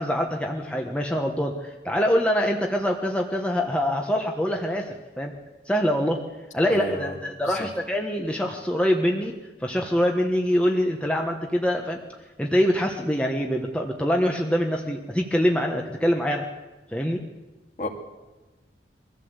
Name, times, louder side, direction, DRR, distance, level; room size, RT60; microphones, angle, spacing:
voice 1, 0.0-5.3 5.7-6.2 6.5-9.3 9.6-12.0 12.4-16.5 16.9-17.2, equal, 5° left, 1 dB, 1.3 m, -24 dB
voice 2, 6.7-7.2 7.5-7.7 17.8-17.9, left 1 dB, 40° left, 3 dB, 2.5 m, -32 dB
23.0 x 15.0 x 8.2 m, 1.2 s
head